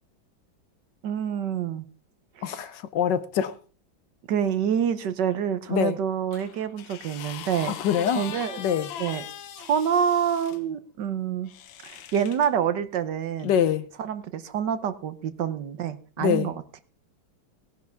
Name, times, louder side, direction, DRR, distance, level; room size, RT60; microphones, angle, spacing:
voice 1, 1.0-1.8 2.4-2.5 4.3-7.8 8.2-8.6 9.0-9.2 9.6-11.5 11.8-13.5 14.0-16.8, right 8 dB, 70° right, 1.5 m, -27 dB
voice 2, 2.4-3.5 5.7-6.0 7.7-8.2 8.6-8.9 13.4-13.9 16.2-16.5, left 9 dB, 70° left, 1.5 m, -24 dB
sound 1, 6.3-10.6 11.5-12.5 13.4-13.6, left 10 dB, 90° left, 1.7 m, -40 dB
17.5 x 10.5 x 3.5 m
omnidirectional pair, 2.1 m